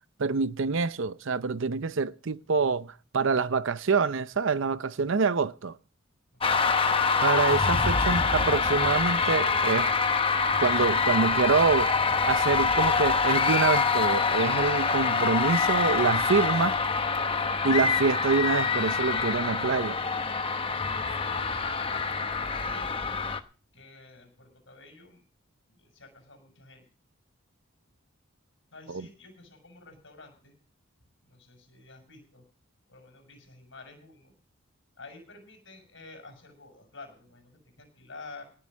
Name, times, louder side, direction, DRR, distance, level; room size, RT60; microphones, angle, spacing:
voice 1, 0.2-5.7 7.2-10.0 10.6-11.9 12.2-16.8 17.6-20.0 28.9-29.1, right 4 dB, 60° right, 0.6 m, -26 dB
sound 1, 6.4-23.4, left 4 dB, 25° left, 0.9 m, -25 dB
voice 2, 21.3-23.1 23.7-25.2 25.7-26.8 28.7-30.5 31.2-32.4 32.9-34.3 35.0-38.4, left 3 dB, 55° left, 6.2 m, -50 dB
18.5 x 7.7 x 6.3 m
head